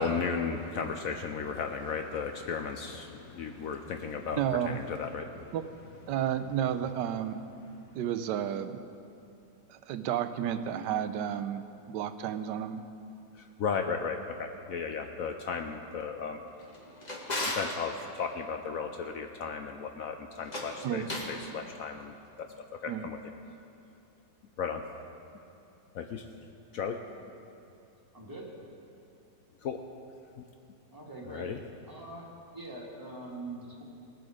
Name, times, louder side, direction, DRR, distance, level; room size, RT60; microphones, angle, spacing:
voice 1, 0.0-5.5 13.3-16.4 17.5-23.2 24.6-24.8 25.9-26.3 26.7-27.0 29.6-29.8 31.3-31.6, left 5 dB, 70° left, 5 dB, 0.9 m, -35 dB
voice 2, 4.4-4.8 5.5-5.7 6.1-7.4 7.9-8.8 9.7-12.8 20.8-21.1 22.9-23.1, right 10 dB, 75° right, 11 dB, 1.2 m, -32 dB
Drawer open or close, 16.6-17.8 20.4-21.4, left 1 dB, 25° left, 1.4 m, -36 dB
voice 3, 28.1-28.5 30.9-31.5 31.9-32.3 32.5-33.8, right 2 dB, 10° right, -3 dB, 1.8 m, -43 dB
19.0 x 7.9 x 5.0 m, 2.7 s
omnidirectional pair, 1.9 m